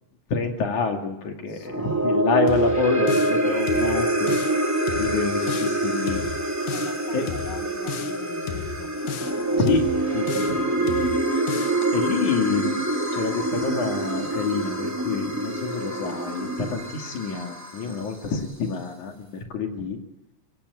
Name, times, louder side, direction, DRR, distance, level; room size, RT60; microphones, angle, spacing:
voice 1, 0.3-4.3 5.0-6.3 7.1-7.3 9.6-9.8 10.1-10.9 11.9-12.9 13.1-20.0, left 5 dB, 60° left, 3 dB, 3.8 m, -27 dB
voice 2, 1.5-2.1 6.7-9.0 9.5-10.2 10.8-11.0 17.8-18.0, left 6 dB, 45° left, 5 dB, 2.5 m, -43 dB
sound 1, 1.6-18.1, right 2 dB, 5° right, 2.4 m, -25 dB
sound 2, 2.5-3.4 3.7-4.6 4.9-5.8 6.1-7.0 7.3-8.2 8.5-9.4 9.7-10.6 10.9-11.8, left 10 dB, 85° left, 2.8 m, -35 dB
24.0 x 17.0 x 8.3 m, 0.96 s
omnidirectional pair, 3.9 m